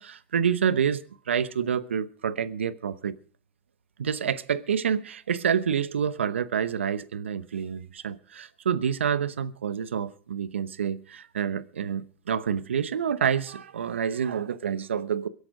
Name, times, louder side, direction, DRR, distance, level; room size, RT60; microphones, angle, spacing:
voice 1, 0.0-3.2 4.0-15.3, right 7 dB, 90° right, 0.9 m, -28 dB
23.0 x 8.3 x 5.2 m
hypercardioid pair, 105°, 6 cm